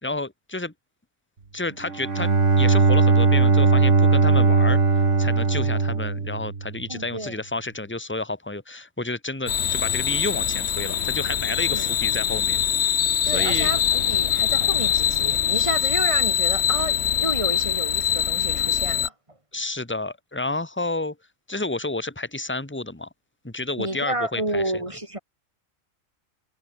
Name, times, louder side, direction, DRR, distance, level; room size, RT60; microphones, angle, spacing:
voice 1, 0.0-0.7 1.5-2.3 2.6-4.8 5.2-12.6 13.3-13.7 19.5-21.2 21.5-23.1 23.4-24.6, left 2 dB, 10° left, 2.3 m, -30 dB
Bowed string instrument, 1.8-6.8, right 4 dB, 60° right, 2.6 m, -19 dB
voice 2, 6.9-7.4 11.7-11.9 13.2-19.1 23.8-25.2, right 1 dB, 20° right, 4.3 m, -30 dB
sound 1, 9.5-19.1, left 10 dB, 60° left, 1.0 m, -23 dB
omnidirectional pair, 1.4 m